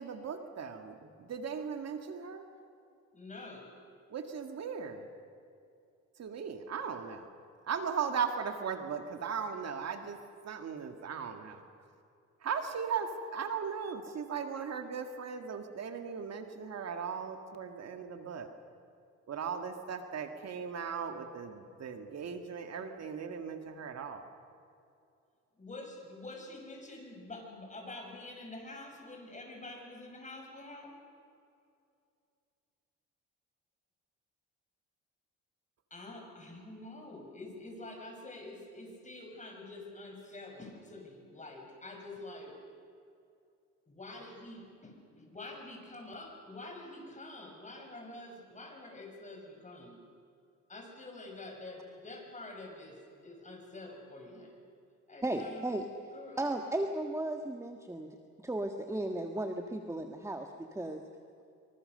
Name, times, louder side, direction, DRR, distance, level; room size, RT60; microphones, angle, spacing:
voice 1, 0.0-2.5 4.1-5.1 6.2-7.3 7.6-10.2 10.4-11.6 12.4-18.5 19.3-24.2, right 6 dB, 60° right, 6 dB, 2.1 m, -38 dB
voice 2, 3.1-3.7 25.6-31.0 35.9-42.6 43.9-50.0 50.7-54.5 55.1-55.7 56.1-56.4, left 2 dB, 25° left, 2 dB, 6.6 m, -47 dB
voice 3, 55.2-55.8 56.4-58.1 58.4-61.0, right 1 dB, 10° right, 5 dB, 1.6 m, -35 dB
25.5 x 24.0 x 6.7 m, 2.5 s
cardioid pair, 90°, 30 cm